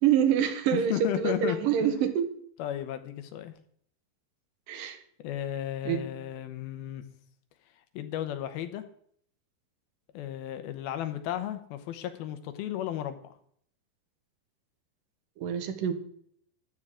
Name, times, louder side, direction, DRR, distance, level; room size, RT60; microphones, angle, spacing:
voice 1, 0.0-0.9 1.2-2.3 4.7-5.0 5.9-6.0 15.4-15.9, right 9 dB, 70° right, 8 dB, 2.6 m, -26 dB
voice 2, 0.7-2.0 2.6-3.6 5.2-7.0 7.9-8.8 10.1-13.3, left 11 dB, 75° left, 9 dB, 2.7 m, -34 dB
13.5 x 11.5 x 3.7 m, 0.64 s
omnidirectional pair, 4.6 m